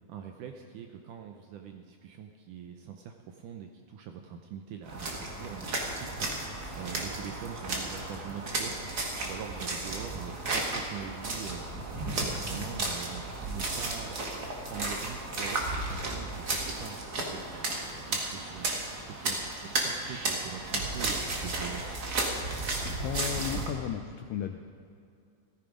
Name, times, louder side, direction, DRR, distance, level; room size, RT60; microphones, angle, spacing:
voice 1, 0.1-14.2 14.7-18.7 19.1-21.8, right 8 dB, 75° right, 4 dB, 1.9 m, -43 dB
sound 1, 4.8-23.7, right 2 dB, 40° right, 1.4 m, -34 dB
voice 2, 23.0-24.6, left 9 dB, 80° left, 6 dB, 2.0 m, -34 dB
16.0 x 14.0 x 5.1 m, 2.4 s
omnidirectional pair, 4.5 m